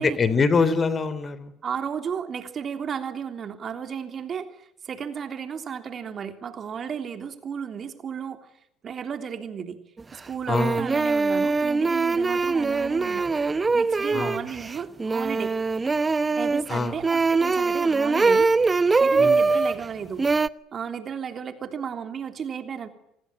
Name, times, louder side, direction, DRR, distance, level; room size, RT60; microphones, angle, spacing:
voice 1, 0.0-1.5 10.5-10.8 14.1-14.4 16.7-17.0 19.2-19.4, left 4 dB, 35° left, 15 dB, 3.3 m, -24 dB
voice 2, 1.6-8.5 8.8-9.8 10.1-13.3 13.7-15.5 16.4-18.5 19.0-20.2 20.7-22.9, right 7 dB, 45° right, 7 dB, 3.3 m, -33 dB
sound 1, 10.0-10.1 10.5-19.8 20.2-20.5, right 4 dB, 25° right, 1.0 m, -22 dB
27.0 x 19.5 x 9.2 m, 0.79 s
hypercardioid pair, 75°, 0 cm